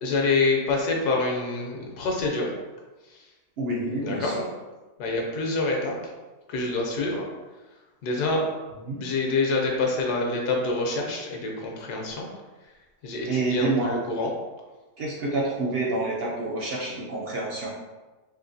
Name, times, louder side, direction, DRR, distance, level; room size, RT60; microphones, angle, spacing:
voice 1, 0.0-2.5 4.0-4.3 5.0-5.9 6.5-7.2 8.0-8.4 9.0-12.3 13.0-14.3, left 3 dB, 80° left, 0 dB, 1.2 m, -26 dB
voice 2, 3.6-4.5 8.9-9.0 13.3-13.9 15.0-17.7, right 2 dB, 70° right, -4 dB, 0.5 m, -28 dB
3.5 x 3.1 x 2.6 m, 1.2 s
omnidirectional pair, 1.7 m